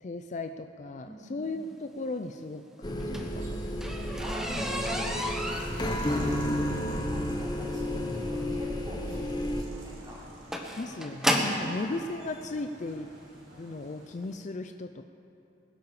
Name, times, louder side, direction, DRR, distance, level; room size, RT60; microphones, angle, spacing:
voice 1, 0.0-3.6 4.5-4.6 10.8-13.1 13.5-15.0, left 2 dB, 40° left, 7 dB, 0.4 m, -36 dB
voice 2, 1.0-1.6 4.2-5.8 6.9-10.2, equal, 20° right, -6 dB, 3.8 m, -42 dB
sound 1, 2.8-9.6, left 1 dB, 20° left, 1.0 m, -32 dB
sound 2, 2.9-11.8 12.7-12.8 13.3-13.5 13.8-13.9 14.2-14.3, equal, 5° right, 1.1 m, -33 dB
sound 3, 3.1-14.2, right 1 dB, 80° right, 3.6 m, -48 dB
21.0 x 12.0 x 4.9 m, 2.9 s
head